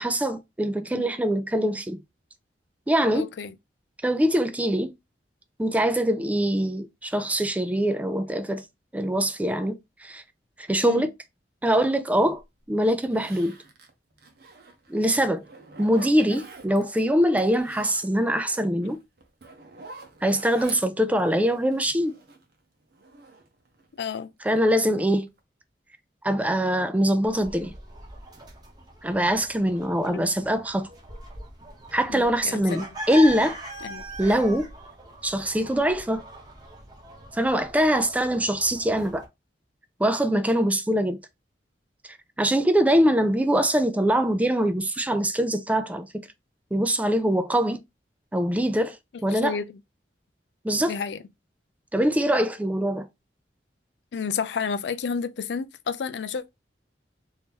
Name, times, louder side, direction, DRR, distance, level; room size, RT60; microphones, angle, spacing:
voice 1, 0.0-2.0 2.9-3.3 4.0-4.9 5.6-8.6 8.9-10.2 10.7-11.1 11.6-12.4 12.7-13.5 14.9-15.4 15.8-19.0 20.2-22.2 24.4-25.3 26.2-27.7 29.0-30.9 31.9-33.6 34.2-34.7 35.2-36.2 37.3-39.3 40.0-41.2 42.4-46.3 46.7-47.8 48.3-49.0 49.2-49.6 50.6-50.9 51.9-53.1, equal, 10° right, 0.4 m, -23 dB
voice 2, 3.1-3.5 10.8-11.1 16.3-16.4 23.9-24.3 30.1-30.3 32.1-32.9 33.8-34.0 49.3-49.8 50.9-51.2 54.1-56.5, left 6 dB, 70° left, 0.4 m, -31 dB
Zipper (clothing), 12.4-12.5 13.0-15.0 15.4-17.0 17.3-22.5 22.9-24.1 24.5-24.9 25.3-25.4, right 3 dB, 60° right, 0.7 m, -47 dB
sound 1, 27.2-39.3, right 1 dB, 25° right, 0.9 m, -41 dB
2.9 x 2.7 x 3.6 m
head